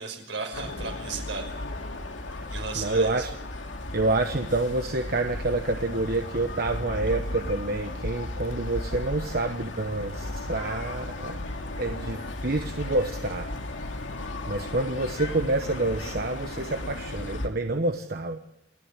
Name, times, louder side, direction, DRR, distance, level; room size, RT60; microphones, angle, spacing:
voice 1, 0.0-1.5 2.5-3.3, right 4 dB, 75° right, 3 dB, 5.7 m, -35 dB
sound 1, 0.5-17.5, left 2 dB, 90° left, 2.4 m, -35 dB
voice 2, 2.3-3.3 3.9-11.4 11.8-13.5 14.5-18.4, right 2 dB, 55° right, 6 dB, 1.1 m, -28 dB
28.5 x 10.5 x 9.9 m, 0.81 s
head